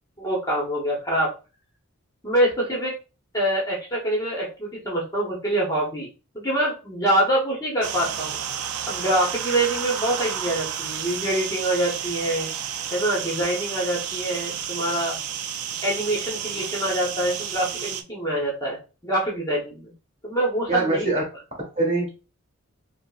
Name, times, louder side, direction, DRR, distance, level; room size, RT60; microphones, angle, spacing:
voice 1, 0.2-1.3 2.2-2.9 3.3-6.1 6.3-8.4 8.9-12.5 12.9-15.1 15.8-18.8 19.0-19.9 20.2-21.1, right 1 dB, 15° left, -4 dB, 0.8 m, -25 dB
sound 1, 7.8-18.0, right 8 dB, 85° right, 0.4 m, -31 dB
voice 2, 20.7-21.2 21.6-22.1, right 2 dB, 30° right, -1 dB, 1.2 m, -23 dB
5.0 x 2.0 x 2.4 m, 0.33 s
head